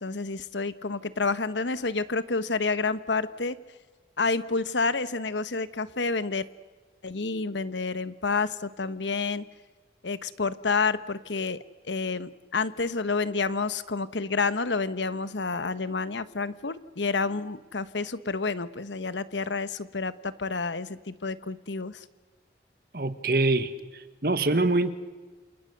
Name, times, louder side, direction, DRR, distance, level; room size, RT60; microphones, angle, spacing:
voice 1, 0.0-3.6 4.2-6.5 7.0-9.4 10.0-11.6 11.8-22.0, left 4 dB, 90° left, 14 dB, 1.2 m, -29 dB
voice 2, 22.9-24.9, right 2 dB, 55° right, 11 dB, 1.7 m, -25 dB
29.0 x 28.0 x 6.8 m, 1.3 s
head